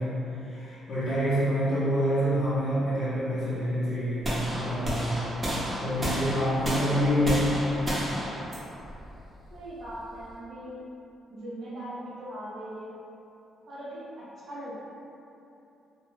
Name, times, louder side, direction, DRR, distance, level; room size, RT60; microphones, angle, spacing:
voice 1, 0.0-5.3 5.8-7.6, equal, 40° left, -12 dB, 0.6 m, -27 dB
sound 1, 4.2-10.3, equal, 25° right, 0.8 m, -32 dB
voice 2, 9.5-10.8 11.3-12.9 13.7-14.7, right 1 dB, 50° right, -7 dB, 0.5 m, -40 dB
2.2 x 2.0 x 3.0 m, 2.8 s
cardioid pair, 90°, 0 cm